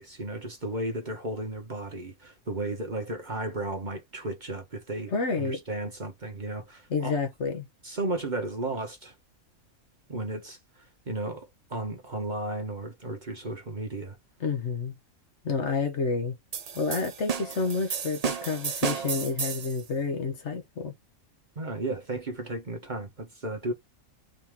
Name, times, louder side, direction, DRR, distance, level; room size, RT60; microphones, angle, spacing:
voice 1, 0.0-7.2 7.8-9.1 10.1-10.6 11.1-14.2 21.6-23.7, right 2 dB, 35° right, 1.1 m, -34 dB
voice 2, 5.1-5.6 6.9-7.7 14.4-14.9 15.4-16.3 16.7-20.9, left 4 dB, 55° left, 1.1 m, -29 dB
sound 1, 16.5-19.8, right 6 dB, 75° right, 0.3 m, -32 dB
4.0 x 2.8 x 3.5 m
omnidirectional pair, 1.5 m